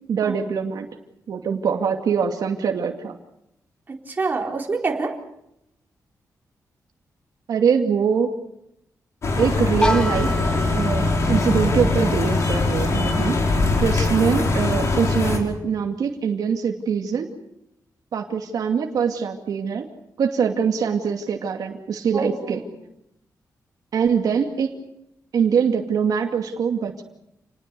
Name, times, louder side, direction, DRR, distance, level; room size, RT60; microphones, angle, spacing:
voice 1, 0.1-0.9 1.3-3.2 7.5-8.3 9.4-10.3 10.7-13.4 13.8-17.3 18.1-19.9 20.2-22.6 23.9-24.7 25.3-27.0, right 6 dB, 75° right, 3 dB, 2.4 m, -23 dB
voice 2, 3.9-5.2 22.1-22.7, right 4 dB, 30° right, 0 dB, 4.2 m, -27 dB
sound 1, 9.2-15.4, left 3 dB, 50° left, 5.5 m, -22 dB
sound 2, 9.8-15.6, left 1 dB, 15° left, 2.0 m, -29 dB
29.5 x 20.0 x 6.9 m, 0.81 s
wide cardioid pair, 170°, 7 cm